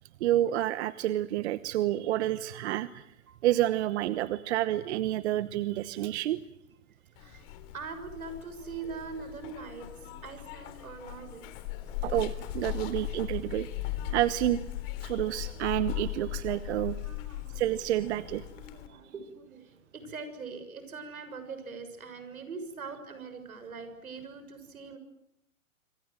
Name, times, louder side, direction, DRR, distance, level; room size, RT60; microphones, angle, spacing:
voice 1, 0.2-3.1 3.4-6.4 12.0-13.7 14.1-14.6 15.0-16.9 17.5-18.4, right 13 dB, 50° right, 15 dB, 1.1 m, -29 dB
Zipper (clothing), 7.2-18.9, left 14 dB, 45° left, 3.8 m, -38 dB
voice 2, 7.7-11.6 11.8-12.1 16.9-17.6 18.2-25.0, right 4 dB, 80° right, 9 dB, 6.9 m, -43 dB
27.0 x 25.5 x 7.8 m, 0.81 s
hypercardioid pair, 120°, 42 cm